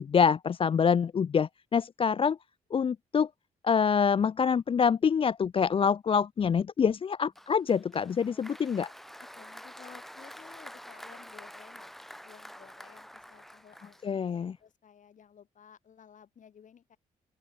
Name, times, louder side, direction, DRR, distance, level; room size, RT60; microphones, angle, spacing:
voice 1, 0.0-2.4 2.7-3.3 3.6-8.9 14.0-14.6, left 6 dB, 40° left, 0.4 m, -26 dB
Applause, 7.4-14.5, equal, ahead, 2.1 m, -48 dB
voice 2, 9.2-11.9 12.2-17.0, left 8 dB, 65° left, 5.5 m, -55 dB
open air
supercardioid pair, 60°, 14 cm